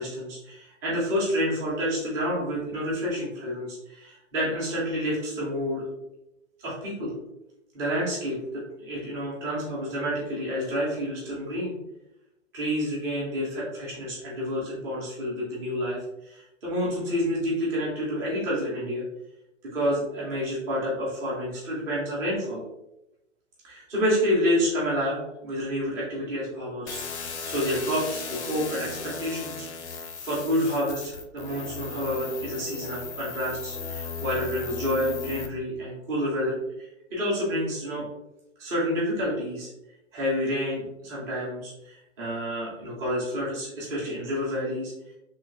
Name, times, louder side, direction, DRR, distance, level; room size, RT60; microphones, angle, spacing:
voice 1, 0.0-5.9 6.6-7.1 7.7-11.7 12.5-19.0 19.6-22.6 23.6-38.1 38.6-39.7 40.1-44.9, equal, 10° right, -7 dB, 0.4 m, -29 dB
sound 1, 26.9-35.5, left 5 dB, 60° left, 0.6 m, -36 dB
3.1 x 2.7 x 2.4 m, 0.90 s
figure-of-eight pair, 115°, 37 cm